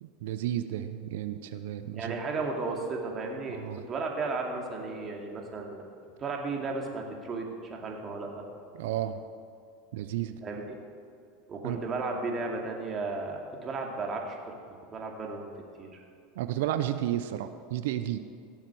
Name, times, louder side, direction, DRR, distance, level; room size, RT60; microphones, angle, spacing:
voice 1, 0.0-2.2 3.6-3.8 8.7-9.2 9.9-10.4 11.6-11.8 16.4-18.2, right 12 dB, 75° right, 10 dB, 0.6 m, -32 dB
voice 2, 1.9-5.9 6.2-8.5 10.4-10.8 11.5-14.6 14.9-15.5 15.8-16.0, right 3 dB, 30° right, 1 dB, 2.5 m, -34 dB
17.0 x 7.3 x 6.2 m, 2.4 s
supercardioid pair, 110°, 0 cm